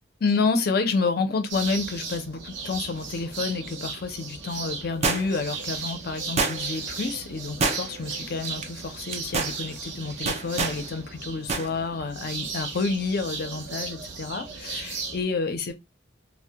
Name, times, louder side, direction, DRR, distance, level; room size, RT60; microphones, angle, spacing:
voice 1, 0.2-15.7, left 4 dB, 55° left, 0.5 m, -29 dB
sound 1, 1.5-15.2, right 4 dB, 75° right, 0.6 m, -36 dB
sound 2, 5.0-5.5 6.4-6.9 7.6-8.1 8.4-8.6 9.1-9.6 10.3-10.8 11.5-11.7 12.0-12.1, right 4 dB, 35° right, 0.3 m, -26 dB
2.1 x 2.1 x 2.8 m
head